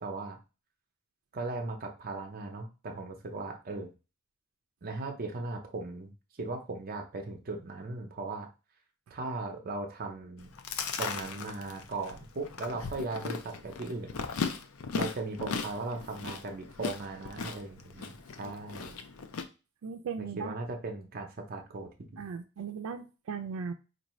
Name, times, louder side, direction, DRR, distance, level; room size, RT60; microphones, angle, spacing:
voice 1, 0.0-0.4 1.3-3.9 4.8-6.1 6.4-8.5 9.1-10.5 11.0-14.2 14.9-18.1 18.4-19.0 20.2-22.2, right 3 dB, 45° right, 4 dB, 0.6 m, -38 dB
Chewing mastication, 10.4-19.4, left 5 dB, 80° left, 0.5 m, -38 dB
voice 2, 19.8-20.5 22.2-23.7, right 6 dB, 90° right, 6 dB, 0.4 m, -37 dB
4.5 x 2.6 x 3.0 m, 0.31 s
head